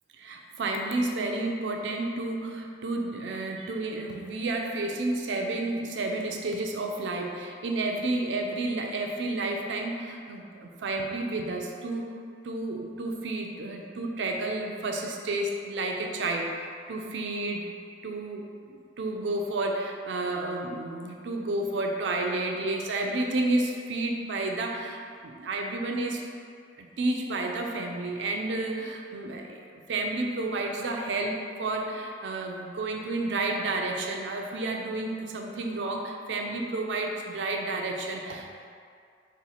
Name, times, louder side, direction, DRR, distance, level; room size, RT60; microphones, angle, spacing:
voice 1, 0.2-17.7 18.0-26.2 26.8-38.5, right 2 dB, 75° right, 2 dB, 0.5 m, -31 dB
4.2 x 2.4 x 4.1 m, 2.3 s
head